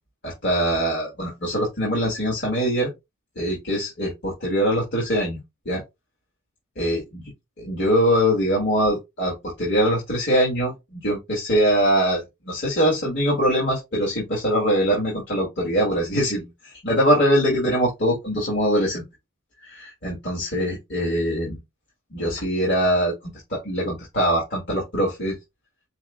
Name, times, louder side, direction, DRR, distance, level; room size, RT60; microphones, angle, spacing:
voice 1, 0.2-2.9 3.3-5.4 5.6-5.8 6.7-7.3 7.6-19.0 19.6-21.6 22.1-25.4, equal, 50° left, 1.7 m, -23 dB
5.3 x 2.1 x 3.5 m
head